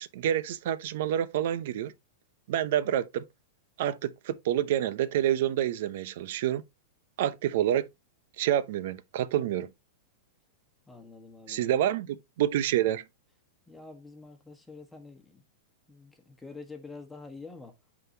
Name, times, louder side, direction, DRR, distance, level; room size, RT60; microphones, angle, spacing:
voice 1, 0.0-1.9 2.5-3.2 3.8-6.6 7.2-7.9 8.4-9.7 11.5-13.0, right 11 dB, 60° right, 0.7 m, -28 dB
voice 2, 10.9-11.7 13.7-15.4 15.9-17.7, left 3 dB, 5° left, 1.3 m, -47 dB
8.9 x 3.9 x 2.7 m
supercardioid pair, 160°, 0 cm